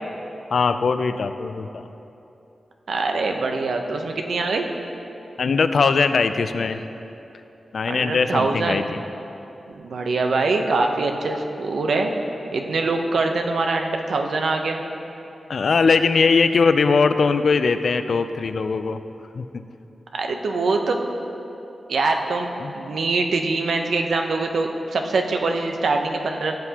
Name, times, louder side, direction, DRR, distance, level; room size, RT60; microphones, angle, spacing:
voice 1, 0.5-1.9 5.4-6.8 7.7-9.0 15.5-19.0 19.3-19.6 22.6-22.7, left 4 dB, 70° left, 10 dB, 0.4 m, -20 dB
voice 2, 2.9-4.7 7.9-8.8 9.7-12.1 12.5-14.8 20.1-21.0 21.9-22.5 22.7-26.6, right 3 dB, 80° right, 3 dB, 0.8 m, -23 dB
15.5 x 7.8 x 2.9 m, 2.9 s
wide cardioid pair, 100°, 0 cm